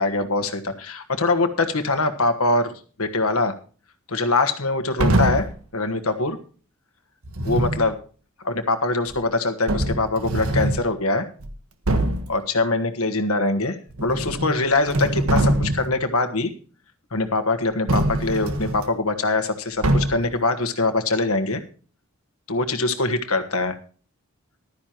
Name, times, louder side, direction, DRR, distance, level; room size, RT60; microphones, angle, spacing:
voice 1, 0.0-2.7 3.0-3.5 4.1-5.5 5.7-6.4 7.4-8.0 8.4-11.3 12.3-16.5 17.1-21.6 22.5-23.8, left 2 dB, 75° left, 8 dB, 1.4 m, -23 dB
sound 1, 5.0-5.6 7.2-7.9 9.1-9.2 9.7-10.9 11.4-11.5 11.9-12.3 13.9-14.6 14.9-16.0 17.9-18.8 19.8-20.4, right 1 dB, 75° right, 1.4 m, -23 dB
15.0 x 12.0 x 3.0 m, 0.40 s
head